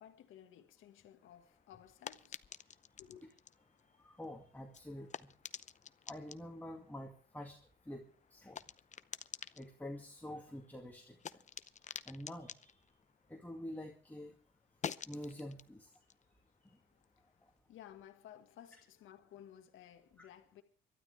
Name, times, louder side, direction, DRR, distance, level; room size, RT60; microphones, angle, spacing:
voice 1, 0.0-2.4 3.0-3.3 16.9-17.0 17.7-20.6, left 10 dB, 85° left, 1.7 m, -56 dB
sound 1, 1.2-14.0 14.3-17.5, left 7 dB, 35° left, 0.7 m, -51 dB
voice 2, 4.0-5.1 6.1-7.5 7.9-8.0 8.3-8.6 9.6-11.2 12.1-12.5 13.3-14.3 15.1-15.9, left 1 dB, 10° left, 2.3 m, -46 dB
24.0 x 12.5 x 3.4 m
cardioid pair, 90°, 20 cm